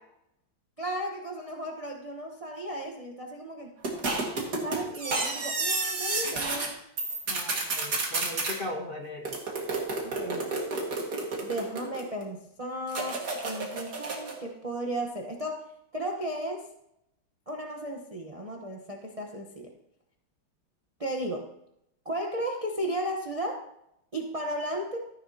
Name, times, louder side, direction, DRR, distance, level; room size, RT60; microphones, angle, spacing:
voice 1, 0.8-3.7 4.6-6.8 10.0-10.6 11.4-15.6 15.9-16.7 17.5-19.7 21.0-21.5 22.0-23.6 24.1-25.0, right 1 dB, 30° right, 1 dB, 0.7 m, -35 dB
sound 1, 3.8-6.7 7.0-8.6 9.2-12.2 12.9-14.4, right 3 dB, 50° right, 2.4 m, -31 dB
voice 2, 7.3-9.3, left 1 dB, 30° left, 1 dB, 1.2 m, -38 dB
14.0 x 10.5 x 2.8 m, 0.79 s
omnidirectional pair, 2.3 m